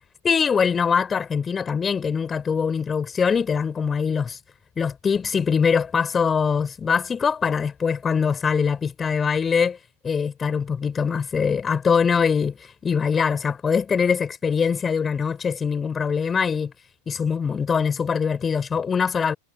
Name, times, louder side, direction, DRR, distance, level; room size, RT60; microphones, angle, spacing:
voice 1, 0.2-4.4 4.8-9.8 10.0-16.7 17.1-19.3, left 6 dB, 20° left, 7.8 m, -23 dB
figure-of-eight pair, 90°, 0 cm